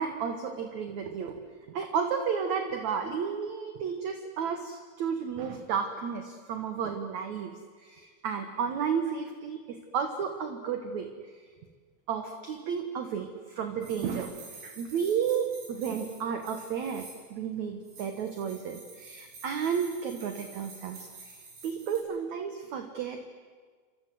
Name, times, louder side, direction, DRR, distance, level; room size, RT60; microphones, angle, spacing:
voice 1, 0.0-11.4 12.1-23.2, right 7 dB, 60° right, 6 dB, 2.0 m, -33 dB
sound 1, 13.8-17.3 17.8-22.0, right 3 dB, 90° right, 9.4 m, -49 dB
28.5 x 26.0 x 7.8 m, 1.5 s
omnidirectional pair, 5.1 m